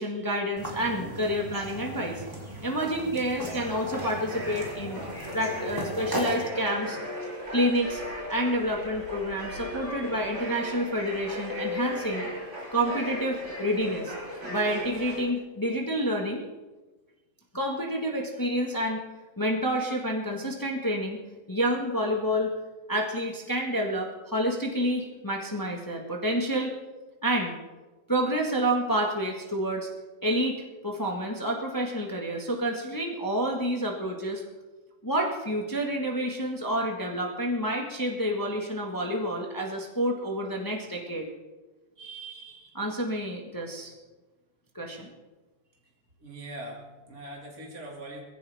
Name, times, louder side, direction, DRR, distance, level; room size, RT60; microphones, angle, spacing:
voice 1, 0.0-2.3 2.6-5.0 5.3-7.0 7.5-8.0 8.3-12.2 12.7-14.1 14.5-16.4 17.5-19.0 19.4-21.2 21.5-22.5 22.9-26.7 27.2-27.5 28.1-29.9 30.2-30.6 30.8-34.4 35.0-41.3 42.0-43.9 44.7-45.1, equal, 10° left, 0 dB, 1.4 m, -29 dB
sound 1, 0.6-6.5, equal, 10° right, 3.1 m, -37 dB
sound 2, 3.4-15.2, equal, 90° right, 6.5 m, -37 dB
voice 2, 46.2-48.2, right 1 dB, 45° right, -2 dB, 3.0 m, -41 dB
21.0 x 16.0 x 3.5 m, 1.2 s
omnidirectional pair, 2.1 m